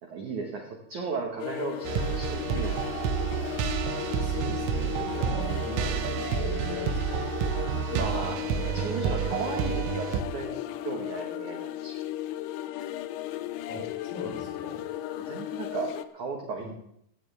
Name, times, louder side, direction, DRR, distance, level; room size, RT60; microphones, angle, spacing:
voice 1, 0.0-2.7 7.9-12.0 15.3-16.7, right 4 dB, 70° right, 1 dB, 1.8 m, -35 dB
sound 1, 1.4-16.1, left 13 dB, 80° left, 2.7 m, -35 dB
sound 2, 1.8-10.2, right 8 dB, 85° right, 3.8 m, -29 dB
voice 2, 4.2-7.3 13.7-14.9 16.6-16.7, left 2 dB, 45° left, -1 dB, 5.3 m, -41 dB
17.0 x 15.0 x 3.5 m, 0.74 s
omnidirectional pair, 5.9 m